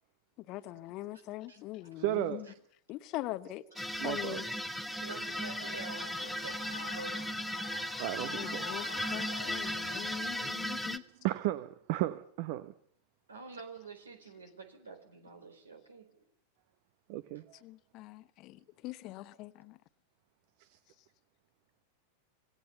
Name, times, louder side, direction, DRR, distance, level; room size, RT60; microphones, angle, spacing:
voice 1, 0.5-2.5 2.9-4.5 8.3-8.8 9.1-11.0 17.6-19.8, left 16 dB, 40° left, 1.0 m, -42 dB
voice 2, 2.0-2.4 4.0-4.4 8.0-8.9 9.3-9.4 10.5-10.6 11.2-12.7 17.1-17.4 20.6-20.7, right 15 dB, 45° right, 1.0 m, -34 dB
sound 1, 3.8-11.0, equal, ahead, 1.3 m, -36 dB
Shout / Cheering, 5.0-10.4, left 7 dB, 70° left, 1.6 m, -48 dB
voice 3, 5.0-7.5 8.2-8.5 9.3-9.4 13.3-16.2 17.3-17.4, right 4 dB, 70° right, 4.0 m, -48 dB
26.0 x 18.5 x 7.0 m
figure-of-eight pair, 90°, 0 cm